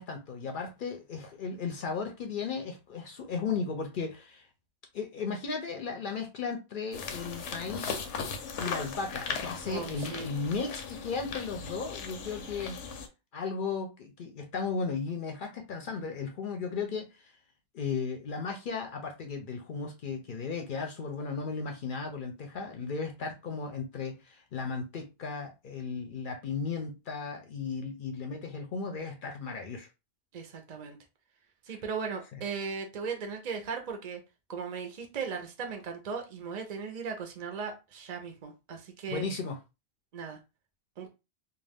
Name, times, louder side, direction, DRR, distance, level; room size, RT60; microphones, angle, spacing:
voice 1, 0.0-4.5 4.9-8.0 8.6-12.8 13.3-17.3 17.7-29.9 32.3-32.4 39.1-39.6, left 5 dB, 60° left, 0.6 m, -35 dB
sound 1, 6.9-13.1, left 5 dB, 85° left, 0.9 m, -38 dB
voice 2, 9.7-10.3 30.3-31.0 31.7-34.2 34.5-39.2 40.1-40.4 41.0-41.1, right 5 dB, 50° right, 0.5 m, -37 dB
2.4 x 2.2 x 3.3 m
omnidirectional pair, 1.2 m